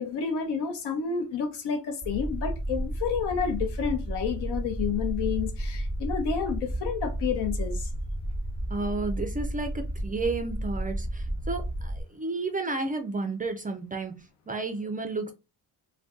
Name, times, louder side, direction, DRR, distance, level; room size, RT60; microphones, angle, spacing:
voice 1, 0.0-7.9, left 6 dB, 70° left, 0.9 m, -30 dB
sound 1, 2.0-12.0, right 1 dB, 5° left, 0.9 m, -32 dB
voice 2, 8.7-15.3, right 3 dB, 20° right, 0.4 m, -32 dB
2.5 x 2.2 x 3.6 m
cardioid pair, 115°, 42 cm